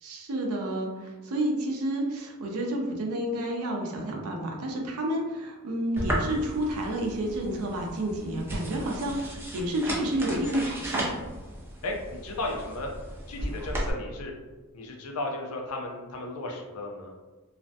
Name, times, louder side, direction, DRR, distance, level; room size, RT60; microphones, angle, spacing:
voice 1, 0.0-11.1, right 1 dB, 75° right, 1 dB, 0.5 m, -30 dB
sound 1, 6.0-13.9, right 1 dB, 10° right, 0.4 m, -35 dB
voice 2, 11.8-12.9 13.3-14.3 14.7-17.1, left 2 dB, 70° left, 1 dB, 0.5 m, -34 dB
2.4 x 2.1 x 2.6 m, 1.2 s
head